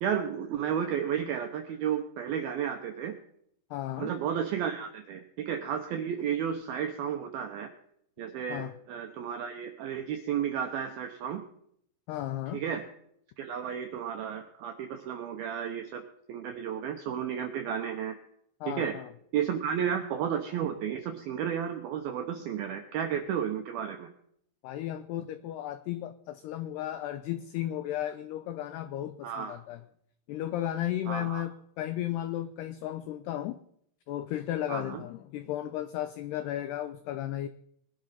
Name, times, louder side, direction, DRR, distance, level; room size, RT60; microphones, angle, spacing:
voice 1, 0.0-3.2 4.0-7.7 8.2-11.4 12.5-12.8 13.4-16.0 16.3-18.1 18.7-18.9 19.3-24.1 29.2-29.5 31.1-31.4 34.7-35.0, right 8 dB, 80° right, 6 dB, 2.1 m, -32 dB
voice 2, 3.7-4.1 8.5-8.7 12.1-12.6 18.6-19.1 24.6-29.8 30.3-33.6 34.1-37.5, left 12 dB, 90° left, 11 dB, 2.3 m, -34 dB
21.5 x 11.5 x 4.2 m, 0.70 s
omnidirectional pair, 5.6 m